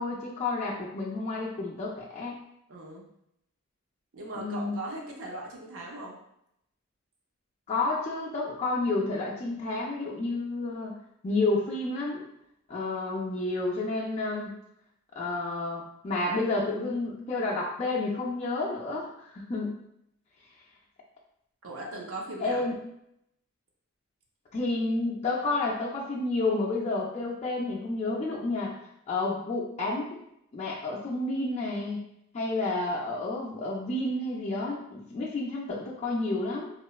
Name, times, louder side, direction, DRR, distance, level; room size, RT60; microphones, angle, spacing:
voice 1, 0.0-2.4 4.3-4.8 7.7-10.9 11.2-12.2 12.7-14.6 15.2-19.8 22.4-22.7 24.5-28.8 29.1-30.2 30.5-32.0 32.3-36.7, left 2 dB, 30° left, -4 dB, 0.3 m, -30 dB
voice 2, 2.7-3.0 4.1-6.1 21.6-22.6, right 2 dB, 65° right, -2 dB, 0.5 m, -39 dB
2.9 x 2.1 x 2.2 m, 0.76 s
head